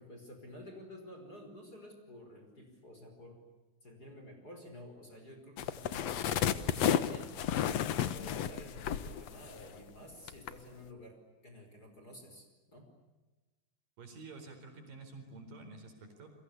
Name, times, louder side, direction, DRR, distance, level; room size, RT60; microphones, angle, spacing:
voice 1, 0.0-3.4 3.8-7.4 7.7-12.9, equal, 20° left, 3 dB, 5.2 m, -51 dB
sound 1, 5.6-9.9 10.3-10.5, left 9 dB, 85° left, 1.4 m, -32 dB
voice 2, 14.0-16.3, right 3 dB, 55° right, 5 dB, 5.9 m, -49 dB
30.0 x 24.0 x 8.3 m, 1.2 s
omnidirectional pair, 4.9 m